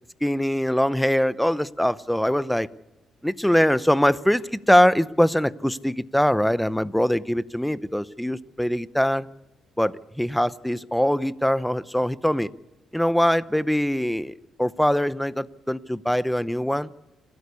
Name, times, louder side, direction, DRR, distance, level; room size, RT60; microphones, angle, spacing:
voice 1, 0.2-2.7 3.2-9.3 9.8-12.5 12.9-14.3 14.6-16.9, equal, 5° left, 17 dB, 0.7 m, -22 dB
29.0 x 13.0 x 8.4 m, 0.95 s
cardioid pair, 90°, 0 cm